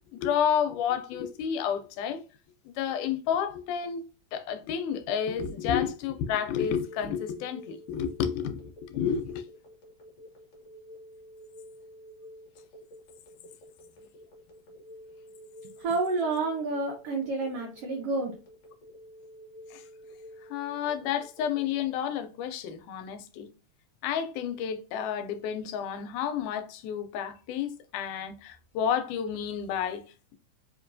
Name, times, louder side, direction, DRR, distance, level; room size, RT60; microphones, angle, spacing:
voice 1, 0.1-2.2 2.7-4.0 4.3-9.4 19.7-19.8 20.5-23.5 24.0-30.0, left 8 dB, 90° left, 2.1 m, -30 dB
Telephone, 6.5-21.8, equal, 60° left, 1.3 m, -49 dB
voice 2, 15.8-18.3, right 3 dB, 85° right, 1.3 m, -29 dB
4.7 x 3.0 x 2.6 m
omnidirectional pair, 3.5 m